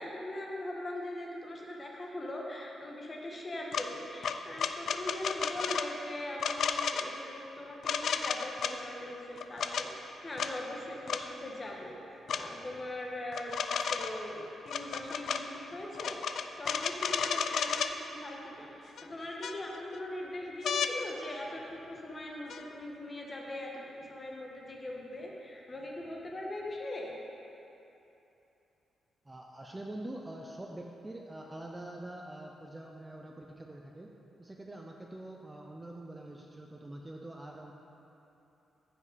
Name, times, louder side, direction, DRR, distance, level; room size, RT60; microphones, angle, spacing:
voice 1, 0.0-13.5 13.9-16.2 16.6-27.1, left 1 dB, 25° left, -2 dB, 1.2 m, -41 dB
sound 1, 3.7-3.9 4.2-5.9 6.4-7.1 7.8-8.7 9.4-9.9 10.4-10.5 11.1-11.2 12.3-12.4 13.3-14.2 14.7-15.4 15.9-17.9 19.0-19.1 19.4-20.0 20.6-20.9 22.5-22.6, left 6 dB, 60° left, 0.4 m, -32 dB
voice 2, 29.2-34.1 34.4-37.7, right 1 dB, 15° right, 0 dB, 0.5 m, -45 dB
14.5 x 5.2 x 4.1 m, 3.0 s
wide cardioid pair, 145°, 0 cm